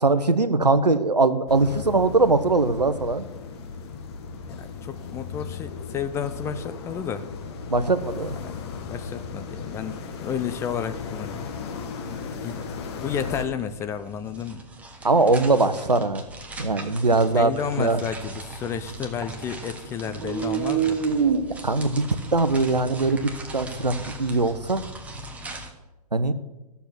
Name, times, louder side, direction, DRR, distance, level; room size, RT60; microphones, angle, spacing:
voice 1, 0.0-3.3 7.7-8.4 15.0-16.2 16.6-17.5 17.8-18.0 21.6-24.8 26.1-26.3, right 3 dB, 85° right, 11 dB, 0.9 m, -21 dB
sound 1, 1.5-13.5, left 5 dB, 40° left, 1.4 m, -36 dB
voice 2, 4.5-7.3 8.4-11.4 12.1-12.6 13.0-14.6 17.3-21.0, left 8 dB, 15° left, 10 dB, 0.5 m, -32 dB
sound 2, 11.4-11.5 11.8-25.7, right 1 dB, 5° right, 1.1 m, -41 dB
sound 3, 17.1-19.7 20.0-25.2, right 6 dB, 40° right, 1.0 m, -29 dB
13.5 x 7.0 x 6.1 m, 1.1 s
figure-of-eight pair, 115°, 20 cm